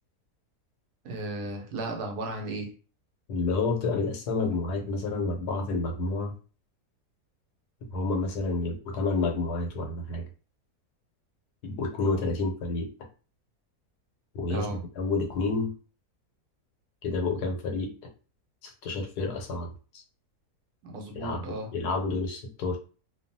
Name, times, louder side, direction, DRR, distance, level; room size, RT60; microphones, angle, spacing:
voice 1, 1.0-2.7 14.5-14.8 20.8-21.7, right 2 dB, 80° right, 2 dB, 1.1 m, -35 dB
voice 2, 3.3-6.3 7.9-10.2 11.6-12.9 14.3-15.7 17.0-17.9 18.6-20.0 21.2-22.8, left 3 dB, 90° left, 2 dB, 1.2 m, -29 dB
2.6 x 2.3 x 2.6 m, 0.37 s
omnidirectional pair, 1.7 m